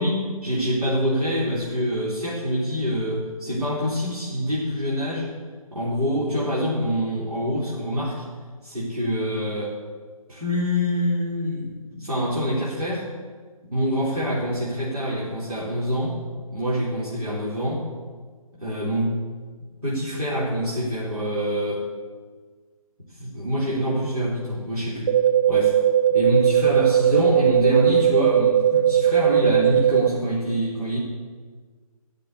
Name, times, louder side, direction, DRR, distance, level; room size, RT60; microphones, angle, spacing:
voice 1, 0.0-5.3 5.7-8.2 8.6-9.8 10.3-13.1 13.7-16.2 16.5-17.9 18.6-19.2 19.8-21.9 23.1-25.2 25.5-25.8 26.1-31.0, equal, 85° right, -7 dB, 3.8 m, -25 dB
sound 1, 25.1-30.1, right 10 dB, 50° right, 0.7 m, -19 dB
13.5 x 6.8 x 8.5 m, 1.5 s
figure-of-eight pair, 145°, 19 cm